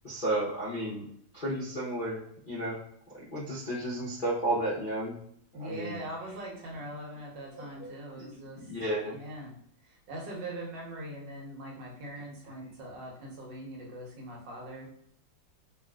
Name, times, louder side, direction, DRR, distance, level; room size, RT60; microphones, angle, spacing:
voice 1, 0.0-1.0 1.3-2.2 2.5-2.8 3.1-5.1 5.6-6.0 7.6-9.2, right 1 dB, 45° left, -11 dB, 0.6 m, -33 dB
voice 2, 5.5-8.7 9.1-9.5 9.8-14.9, right 1 dB, 75° right, -2 dB, 1.6 m, -41 dB
3.6 x 2.5 x 2.3 m, 0.69 s
omnidirectional pair, 2.0 m